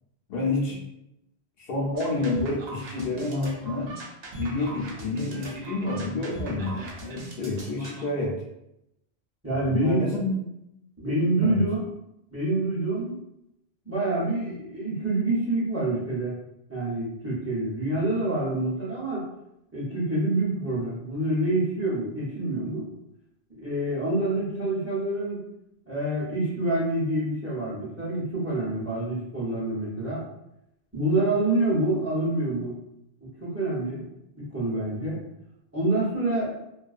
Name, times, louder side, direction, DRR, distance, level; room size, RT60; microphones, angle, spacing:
voice 1, 0.3-0.8 1.6-3.9 4.4-8.3 9.5-10.3 11.4-11.6, left 2 dB, 70° left, -3 dB, 0.8 m, -29 dB
sound 1, 1.9-8.0, right 2 dB, 75° right, 0.8 m, -39 dB
voice 2, 9.4-10.0 11.0-11.8 12.3-13.2 13.8-16.3 16.7-19.3 19.7-22.9 23.6-25.4 25.9-30.3 30.9-32.7 33.2-34.1 34.4-35.2 35.7-36.5, right 2 dB, 15° right, -7 dB, 0.6 m, -27 dB
2.4 x 2.2 x 2.3 m, 0.84 s
omnidirectional pair, 1.0 m